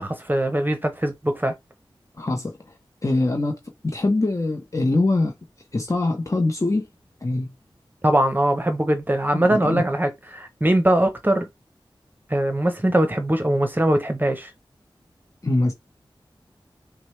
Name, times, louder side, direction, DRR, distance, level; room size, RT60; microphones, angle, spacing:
voice 1, 0.0-1.5 8.0-11.5 12.3-14.5, right 1 dB, 20° right, 0.8 m, -21 dB
voice 2, 2.2-2.5 3.0-5.3 5.7-6.9 7.2-7.5 9.3-9.8 15.4-15.7, left 2 dB, 35° left, 0.8 m, -23 dB
6.0 x 2.2 x 3.2 m
wide cardioid pair, 60°, 9 cm